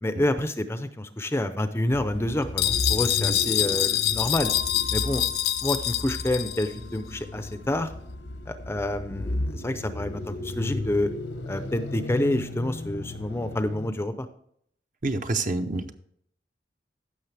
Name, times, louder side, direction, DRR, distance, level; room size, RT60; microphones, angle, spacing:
voice 1, 0.0-4.5 4.9-5.2 5.6-7.9 8.5-11.1 11.5-14.3, left 1 dB, 15° left, 10 dB, 0.5 m, -28 dB
sound 1, 1.9-14.1, left 1 dB, 80° left, 1.0 m, -35 dB
sound 2, 2.6-6.7, left 13 dB, 55° left, 0.6 m, -26 dB
sound 3, 4.4-12.2, left 3 dB, 85° right, 2.9 m, -46 dB
voice 2, 15.0-15.9, right 2 dB, 45° right, 8 dB, 0.8 m, -27 dB
15.0 x 6.3 x 3.3 m, 0.68 s
head